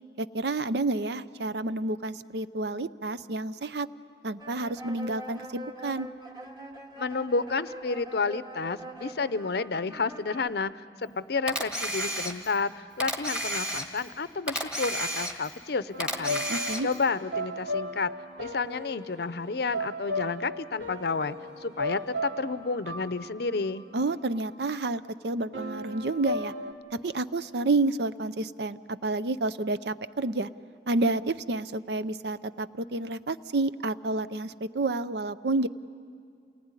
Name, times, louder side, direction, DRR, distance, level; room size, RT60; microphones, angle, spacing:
voice 1, 0.2-3.9 4.2-6.1 16.5-16.9 23.9-26.5 26.9-30.5 30.9-35.7, right 2 dB, 65° right, 14 dB, 0.6 m, -29 dB
sound 1, 4.4-10.5, right 1 dB, 25° right, 1.9 m, -44 dB
voice 2, 7.0-18.1 18.4-23.8, left 4 dB, 60° left, 14 dB, 0.6 m, -31 dB
Camera, 11.5-12.6 13.0-14.1 14.5-15.6 16.0-17.0, right 1 dB, 5° right, 1.7 m, -32 dB
reverberated sad happiness loop, 15.9-24.8 25.5-26.7, left 1 dB, 85° right, 2.5 m, -36 dB
28.0 x 19.5 x 9.7 m, 2.3 s
head